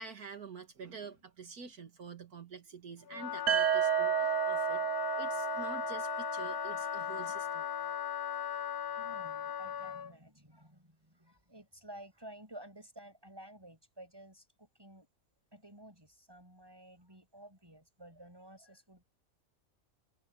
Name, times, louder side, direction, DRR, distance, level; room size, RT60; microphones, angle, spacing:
voice 1, 0.0-7.7, right 5 dB, 80° right, 2.4 m, -47 dB
Wind instrument woodwind instrument, 3.1-10.1, left 9 dB, 85° left, 1.3 m, -37 dB
sound 1, 3.5-7.3, right 12 dB, 60° right, 1.1 m, -32 dB
voice 2, 9.0-15.1 15.5-19.0, right 1 dB, 15° right, 7.2 m, -53 dB
omnidirectional pair, 1.6 m